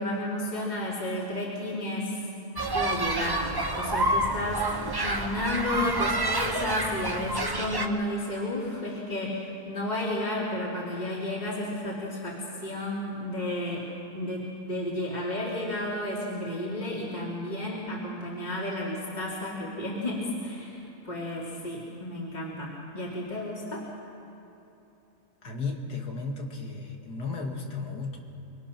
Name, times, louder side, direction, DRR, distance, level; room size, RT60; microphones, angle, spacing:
voice 1, 0.0-2.2 2.7-13.9 14.1-23.8, left 1 dB, 25° left, -5 dB, 3.2 m, -32 dB
sound 1, 2.6-7.9, right 2 dB, 15° right, 0.8 m, -28 dB
voice 2, 25.4-28.2, left 4 dB, 75° left, 1 dB, 2.8 m, -34 dB
25.5 x 24.0 x 6.0 m, 2.9 s
omnidirectional pair, 1.8 m